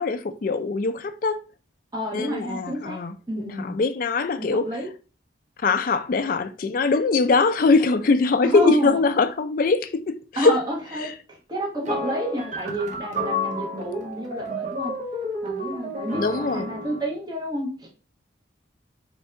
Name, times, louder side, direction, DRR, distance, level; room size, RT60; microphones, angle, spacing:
voice 1, 0.0-1.4 2.1-4.7 5.6-10.6 11.0-11.1 16.2-16.7, left 4 dB, 45° left, 0.3 m, -22 dB
voice 2, 1.9-3.0 3.3-3.8 4.4-4.9 8.4-9.0 10.4-14.9 15.4-17.9, right 1 dB, 20° right, 0.9 m, -29 dB
sound 1, 11.8-17.1, left 1 dB, 40° right, 0.6 m, -31 dB
3.3 x 2.7 x 4.4 m
head